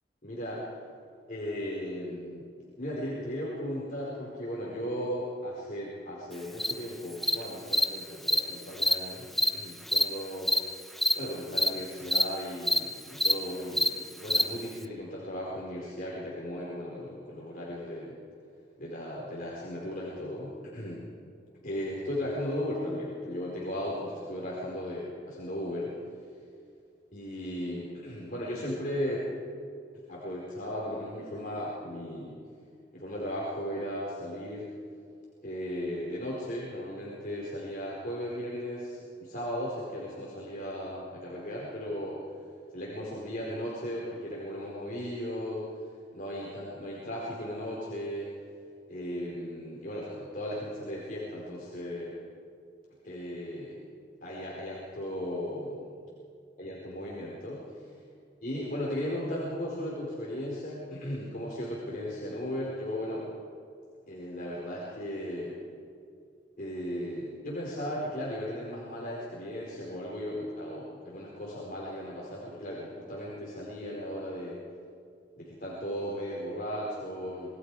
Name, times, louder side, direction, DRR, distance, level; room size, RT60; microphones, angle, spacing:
voice 1, 0.2-0.6 1.3-2.4 2.8-10.6 11.1-18.2 18.8-21.1 21.6-25.9 27.1-29.3 30.1-32.4 32.9-34.7 35.4-42.2 42.7-45.7 46.1-48.3 48.9-52.2 53.0-53.8 54.2-55.9 56.6-57.9 58.4-63.3 64.1-65.6 66.6-74.6 75.4-77.5, equal, 50° left, -5 dB, 4.6 m, -36 dB
Cricket, 6.6-6.7 7.2-7.3 7.7-7.8 8.3-8.4 8.8-8.9 9.4-9.5 9.9-10.0 10.5-10.6 11.0-11.1 11.6-11.7 12.1-12.2 12.7-12.8 13.2-13.3 13.8-13.9 14.3-14.4, left 1 dB, ahead, 0.7 m, -24 dB
26.5 x 21.0 x 4.9 m, 2.3 s
head